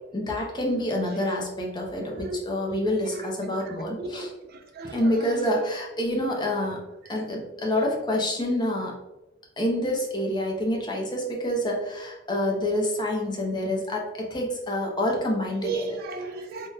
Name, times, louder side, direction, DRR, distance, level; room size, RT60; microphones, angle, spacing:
voice 1, 0.1-4.3 4.9-6.8 7.1-9.0 9.6-16.0, left 1 dB, 25° left, -1 dB, 0.6 m, -27 dB
voice 2, 2.0-2.4 2.7-2.8 3.1-3.2 3.7-5.6 15.6-16.7, right 3 dB, 55° right, 5 dB, 0.4 m, -36 dB
3.5 x 2.2 x 2.7 m, 1.0 s
head